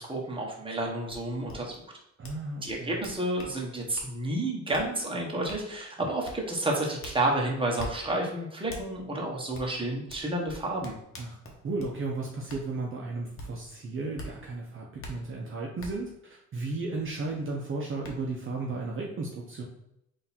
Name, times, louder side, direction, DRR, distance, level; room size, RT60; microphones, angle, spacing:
voice 1, 0.0-1.7 2.6-11.0, right 1 dB, 15° right, -1 dB, 1.2 m, -30 dB
sound 1, 1.1-1.2 1.5-1.6 2.2-2.4 2.7-3.5 3.9-4.1 4.7-4.9 5.5-5.6 6.2-6.4 7.0-7.2 7.8-7.9 8.7-8.8 9.5-9.7 10.1-11.9 12.5-12.6 13.4-13.5 14.2-14.3 15.0-15.1 15.8-15.9 17.4-17.5 18.0-18.1, equal, 45° left, 1.1 m, -42 dB
voice 2, 2.2-2.9 11.2-11.4 11.6-19.6, right 3 dB, 45° right, -2 dB, 0.8 m, -34 dB
3.8 x 2.8 x 4.3 m, 0.78 s
cardioid pair, 90°, 30 cm